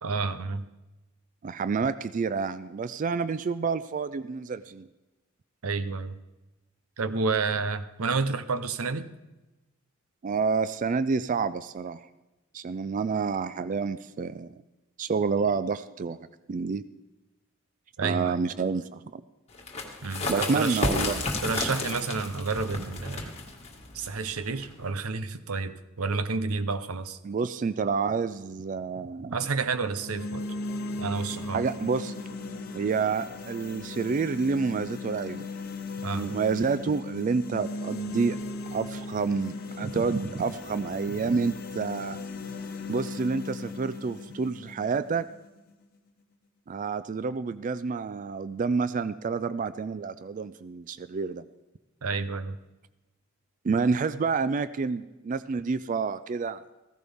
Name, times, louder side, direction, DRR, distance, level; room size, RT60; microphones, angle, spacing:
voice 1, 0.0-0.6 5.6-6.2 7.0-9.1 18.0-18.4 20.0-20.8 21.4-23.3 23.9-27.2 29.3-30.5 31.0-31.6 36.0-36.4 52.0-52.6, right 4 dB, 90° right, 12 dB, 0.7 m, -30 dB
voice 2, 1.4-4.9 10.2-12.0 12.5-14.5 15.0-16.2 16.5-16.8 18.0-19.2 20.3-21.2 27.2-29.4 31.5-32.1 32.7-35.5 36.1-38.4 38.7-42.2 42.9-45.3 46.7-51.4 53.6-56.6, right 5 dB, 35° right, 14 dB, 0.3 m, -28 dB
sound 1, 19.5-24.9, left 2 dB, 30° left, 1.8 m, -32 dB
sound 2, 29.8-45.8, left 3 dB, 45° left, 1.1 m, -38 dB
15.5 x 15.0 x 3.5 m, 1.1 s
head